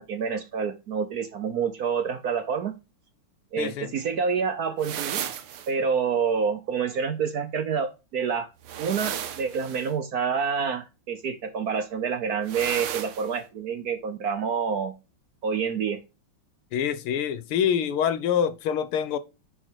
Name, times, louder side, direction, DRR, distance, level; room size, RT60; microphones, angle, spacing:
voice 1, 0.0-2.7 3.5-5.2 5.7-8.5 8.8-14.9 15.4-16.0, right 6 dB, 60° right, 1.1 m, -28 dB
voice 2, 3.6-3.9 16.7-19.2, left 8 dB, 85° left, 1.8 m, -25 dB
sound 1, 4.8-5.7 8.6-9.9 12.5-13.3, right 9 dB, 85° right, 1.9 m, -34 dB
10.0 x 4.5 x 4.5 m
omnidirectional pair, 2.3 m